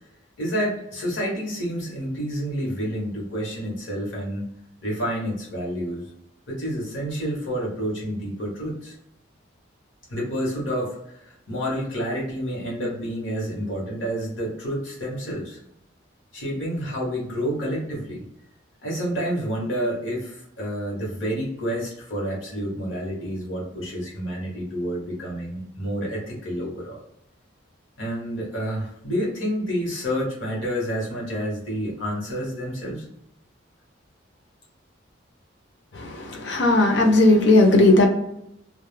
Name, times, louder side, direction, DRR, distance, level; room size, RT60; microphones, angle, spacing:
voice 1, 0.4-4.5 4.8-6.1 6.5-8.9 10.1-15.6 16.3-18.3 18.8-27.0 28.0-33.0, equal, 80° left, -3 dB, 1.1 m, -29 dB
voice 2, 35.9-38.1, left 2 dB, 60° left, 3 dB, 0.6 m, -17 dB
2.3 x 2.0 x 3.1 m, 0.79 s
head